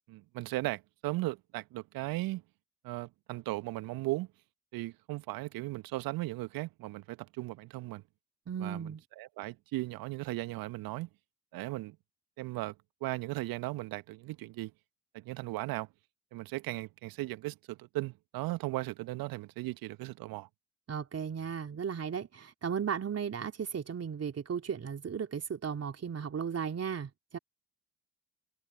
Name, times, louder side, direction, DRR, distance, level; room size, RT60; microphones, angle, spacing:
voice 1, 0.1-2.4 2.8-4.3 4.7-8.0 8.6-8.9 9.2-11.1 11.5-12.0 12.4-12.7 13.0-14.7 15.1-15.9 16.3-20.5, right 19 dB, 60° right, 1.9 m, -37 dB
voice 2, 8.5-9.0 20.9-27.4, right 7 dB, 35° right, 3.7 m, -35 dB
figure-of-eight pair, 50°, 41 cm